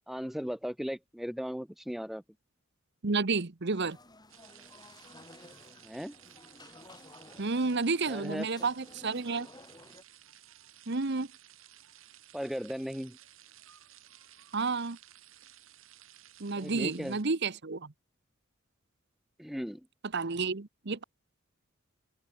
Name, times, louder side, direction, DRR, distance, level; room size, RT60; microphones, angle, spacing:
voice 1, 0.1-2.2 5.8-6.2 8.1-8.7 12.3-13.2 16.6-17.2 19.4-19.8, equal, ahead, 0.5 m, -37 dB
voice 2, 3.0-4.0 7.4-9.5 10.9-11.3 14.5-15.0 16.4-17.9 20.1-21.0, right 4 dB, 55° right, 1.1 m, -31 dB
sound 1, 3.7-10.0, left 2 dB, 20° left, 7.7 m, -54 dB
sound 2, 4.3-17.2, right 12 dB, 70° right, 2.9 m, -56 dB
open air
head